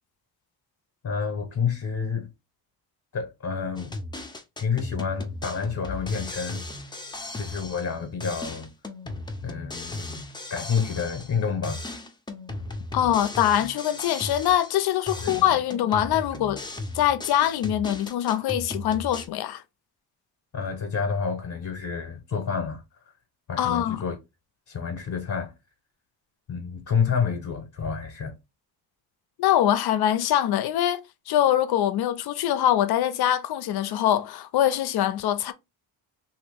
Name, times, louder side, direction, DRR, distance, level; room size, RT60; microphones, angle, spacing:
voice 1, 1.0-2.3 3.1-3.9 4.6-6.6 7.3-8.7 9.4-10.2 10.5-11.8 15.2-15.4 20.5-22.8 23.5-24.2 24.7-25.5 26.5-28.3, left 6 dB, 45° left, 0.9 m, -29 dB
sound 1, 3.8-7.9 8.2-11.4 11.6-14.8 15.1-19.3, left 2 dB, 10° left, 0.5 m, -36 dB
voice 2, 12.9-16.6 16.9-19.6 23.6-24.0 29.4-31.0 31.3-35.5, left 11 dB, 65° left, 0.5 m, -23 dB
2.8 x 2.5 x 3.3 m
cardioid pair, 85°, 42 cm